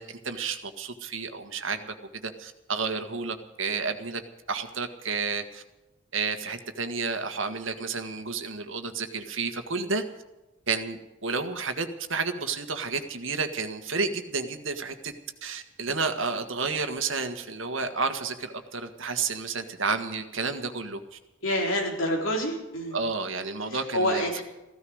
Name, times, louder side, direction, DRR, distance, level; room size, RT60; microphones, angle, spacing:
voice 1, 0.0-1.9 2.2-4.2 4.5-5.6 6.1-10.0 10.7-15.1 15.4-21.2 22.9-24.4, right 4 dB, 70° right, 7 dB, 1.6 m, -31 dB
voice 2, 21.4-23.0 23.7-24.4, equal, 70° left, 1 dB, 3.9 m, -27 dB
15.5 x 13.5 x 6.4 m, 0.99 s
head